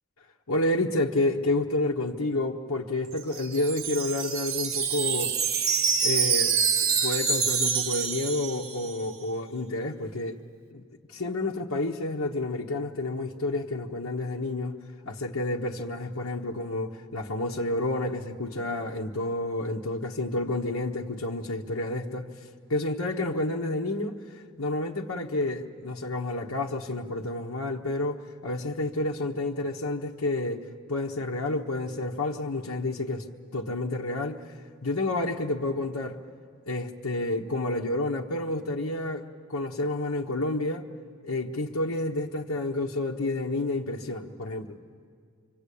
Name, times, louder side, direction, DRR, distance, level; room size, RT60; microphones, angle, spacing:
voice 1, 0.5-5.4 6.0-10.4 10.7-10.8 11.1-14.7 15.0-22.3 22.7-33.2 33.5-34.4 34.8-36.2 36.6-39.2 39.5-40.9 41.2-44.8, left 2 dB, 90° left, -1 dB, 1.2 m, -30 dB
Wind chime, 3.1-9.1, right 6 dB, 75° right, 1.3 m, -26 dB
25.5 x 25.0 x 8.5 m, 2.1 s
head